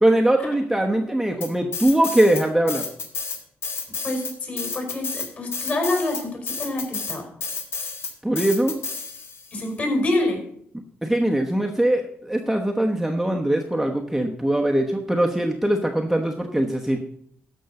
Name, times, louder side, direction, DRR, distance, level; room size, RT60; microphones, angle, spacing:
voice 1, 0.0-2.8 8.2-8.8 11.0-17.0, right 1 dB, 5° right, 2 dB, 1.0 m, -21 dB
sound 1, 1.4-2.4 2.7-9.5, left 5 dB, 65° left, 2.1 m, -31 dB
voice 2, 4.0-7.2 9.5-10.4, left 2 dB, 40° left, 3 dB, 5.0 m, -26 dB
13.0 x 5.4 x 7.0 m, 0.66 s
cardioid pair, 105°, 4 cm